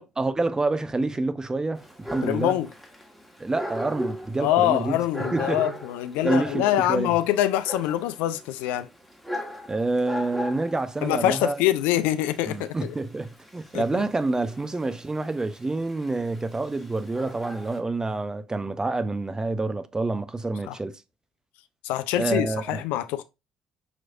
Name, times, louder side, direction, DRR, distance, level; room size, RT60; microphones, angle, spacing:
voice 1, 0.0-2.6 3.4-5.0 5.3-5.7 6.2-7.1 9.7-11.5 12.5-20.9 22.1-22.8, right 2 dB, 20° right, 0.6 m, -27 dB
Dog, 1.8-17.8, equal, ahead, 1.4 m, -38 dB
voice 2, 2.2-2.7 4.4-8.9 11.0-12.7 13.7-13.8 20.7-20.8 21.8-23.2, left 13 dB, 70° left, 0.4 m, -24 dB
5.8 x 3.1 x 2.5 m
hypercardioid pair, 50°, 3 cm